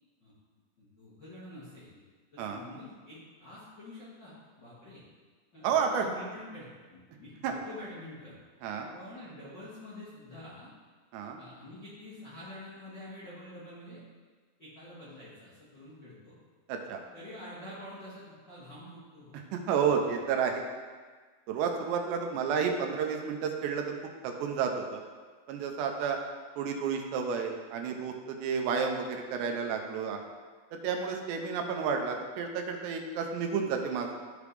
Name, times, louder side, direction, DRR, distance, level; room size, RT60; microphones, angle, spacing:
voice 1, 0.8-2.0 2.3-5.0 5.5-8.3 8.9-10.7 11.4-14.0 14.6-16.3 17.1-19.4 19.9-20.0, left 1 dB, 60° left, -10 dB, 1.1 m, -47 dB
voice 2, 5.6-6.1 7.4-7.5 8.6-8.9 11.1-11.4 16.7-17.0 19.5-20.6 21.5-23.9 24.2-25.0 25.5-26.2 26.6-30.2 30.7-34.2, right 6 dB, 85° right, 3 dB, 2.8 m, -31 dB
13.5 x 5.0 x 3.4 m, 1.5 s
omnidirectional pair, 5.1 m